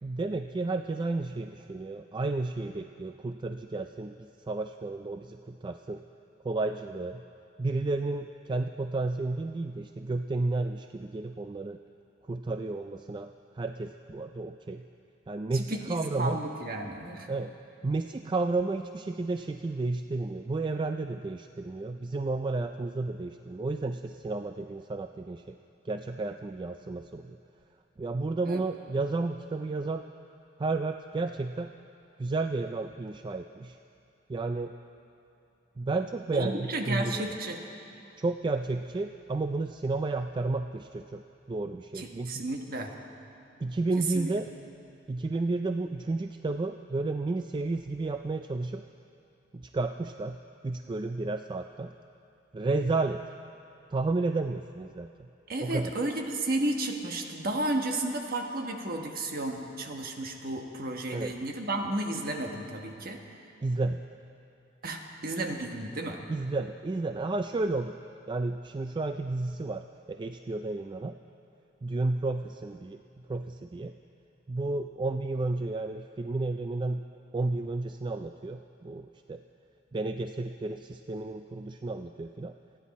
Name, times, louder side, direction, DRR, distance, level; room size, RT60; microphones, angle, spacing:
voice 1, 0.0-6.0 6.4-7.2 7.6-11.8 12.3-14.8 15.3-16.4 17.3-17.5 17.8-25.5 25.9-27.4 28.0-30.1 30.6-31.7 32.2-33.8 34.3-34.7 35.8-37.2 38.2-41.2 41.5-42.4 43.6-44.5 45.1-48.8 49.5-50.4 50.6-51.9 52.5-53.2 53.9-55.3 55.6-55.9 61.1-61.3 63.6-64.0 66.3-68.0 68.3-71.2 71.8-73.0 73.3-73.9 74.5-77.0 77.3-79.4 79.9-82.5, right 3 dB, 25° right, 7 dB, 0.3 m, -32 dB
voice 2, 15.5-17.3 28.4-28.6 36.3-37.6 41.9-42.9 44.0-44.3 55.5-63.2 64.8-66.2, right 2 dB, 50° right, 3 dB, 1.3 m, -33 dB
28.5 x 10.5 x 4.2 m, 2.7 s
head